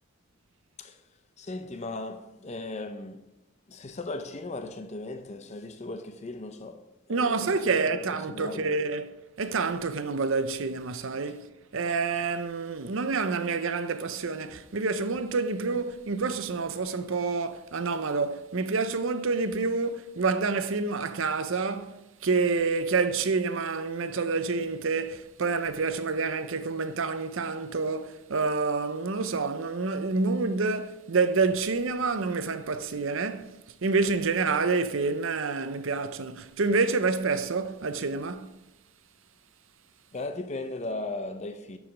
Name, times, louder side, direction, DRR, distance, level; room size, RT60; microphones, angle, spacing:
voice 1, 1.4-3.3 3.7-8.7 40.1-41.8, left 2 dB, 30° left, 0.5 m, -37 dB
voice 2, 7.1-11.5 11.7-38.5, right 4 dB, 65° right, 0.6 m, -28 dB
11.0 x 4.9 x 5.1 m
head